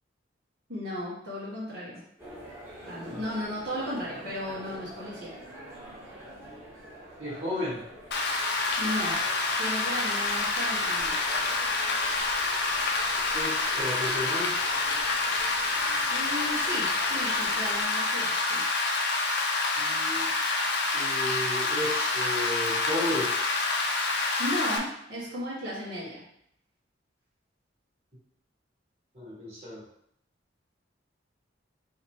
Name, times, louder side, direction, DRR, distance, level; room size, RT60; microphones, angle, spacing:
voice 1, 0.7-2.0 2.9-5.3 8.8-9.2 9.6-11.3 16.1-18.6 24.4-26.2, equal, 60° right, -8 dB, 1.5 m, -35 dB
sound 1, 2.2-17.8, right 1 dB, 15° right, 1.5 m, -46 dB
voice 2, 7.2-7.8 13.3-14.5 19.8-20.3 20.9-23.3 29.1-29.8, left 1 dB, 35° right, -7 dB, 1.7 m, -33 dB
Rain, 8.1-24.8, left 3 dB, 60° left, 0.6 m, -27 dB
4.8 x 2.9 x 3.2 m, 0.72 s
head